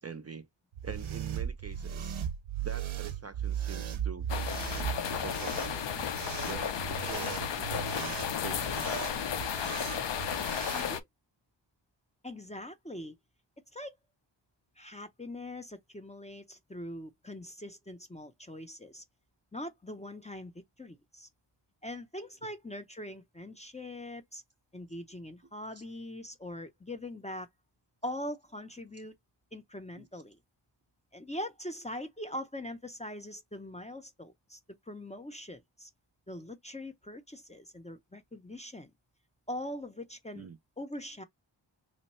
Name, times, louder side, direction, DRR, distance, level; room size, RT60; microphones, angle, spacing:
voice 1, 0.0-0.5 0.8-2.2 2.6-4.3 5.1-6.2 6.5-9.1 25.8-25.9 30.0-30.1 40.3-40.6, right 5 dB, 35° right, 0.5 m, -45 dB
sound 1, 0.7-10.9, right 9 dB, 85° right, 0.6 m, -37 dB
sound 2, 4.3-11.0, left 8 dB, 65° left, 0.6 m, -33 dB
voice 2, 10.7-11.0 12.2-13.2 13.7-14.0 14.8-19.0 19.5-20.5 20.8-21.3 21.8-24.4 24.7-27.5 28.0-29.1 29.5-30.4 31.1-34.6 34.9-35.9 36.3-38.9 39.5-40.5 40.8-41.2, left 1 dB, 15° left, 0.5 m, -42 dB
3.0 x 2.1 x 4.1 m
wide cardioid pair, 85°, 46 cm